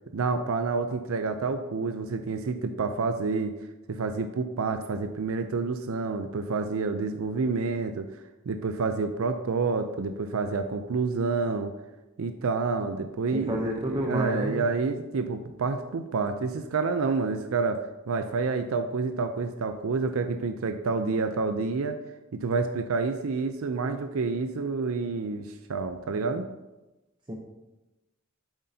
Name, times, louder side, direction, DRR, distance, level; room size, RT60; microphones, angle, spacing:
voice 1, 0.1-3.5 3.9-8.1 8.5-11.7 12.2-22.0 22.3-26.4, right 4 dB, 70° right, 8 dB, 0.5 m, -28 dB
voice 2, 13.3-14.6 27.3-27.4, equal, 20° right, 0 dB, 0.7 m, -30 dB
8.0 x 7.5 x 2.8 m, 1.0 s
head